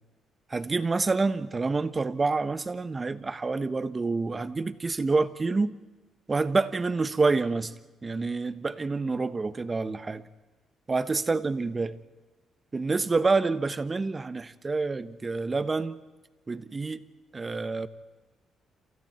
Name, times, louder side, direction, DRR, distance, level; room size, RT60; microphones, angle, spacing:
voice 1, 0.5-5.7 6.3-7.7 8.0-10.2 10.9-12.0 12.7-16.0 16.5-17.0 17.3-17.9, right 3 dB, 25° right, 13 dB, 1.3 m, -27 dB
29.0 x 28.0 x 4.5 m, 1.2 s
cardioid pair, 90°, 0 cm